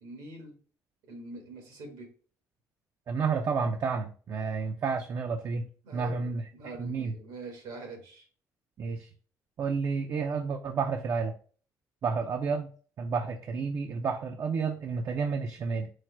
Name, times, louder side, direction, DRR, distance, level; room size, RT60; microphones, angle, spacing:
voice 1, 0.0-0.5 1.1-2.1 5.8-6.2 6.5-8.2, right 3 dB, 85° right, 1 dB, 1.6 m, -43 dB
voice 2, 3.1-6.5 6.8-7.1 8.8-9.1 9.6-11.3 12.0-12.7 13.0-15.9, right 5 dB, 50° right, 5 dB, 0.4 m, -30 dB
4.6 x 2.1 x 4.4 m, 0.42 s
cardioid pair, 100°, 7 cm